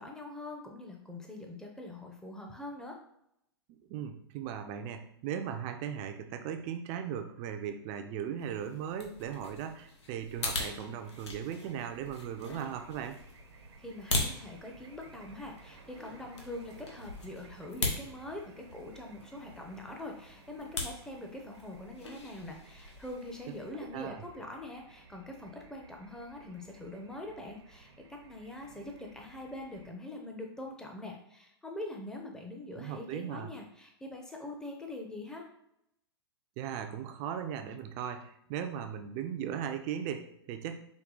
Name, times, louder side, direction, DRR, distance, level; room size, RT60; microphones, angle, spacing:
voice 1, 0.0-3.0 13.8-35.5, left 1 dB, 5° left, 1 dB, 0.7 m, -43 dB
voice 2, 3.9-13.2 23.7-24.2 32.7-33.5 36.6-40.8, right 8 dB, 35° right, 7 dB, 0.5 m, -38 dB
sound 1, 8.4-23.7, left 2 dB, 90° left, 1.0 m, -41 dB
sound 2, 10.3-29.9, right 4 dB, 75° right, 0.8 m, -57 dB
4.7 x 2.3 x 3.8 m, 0.77 s
hypercardioid pair, 125°, 14 cm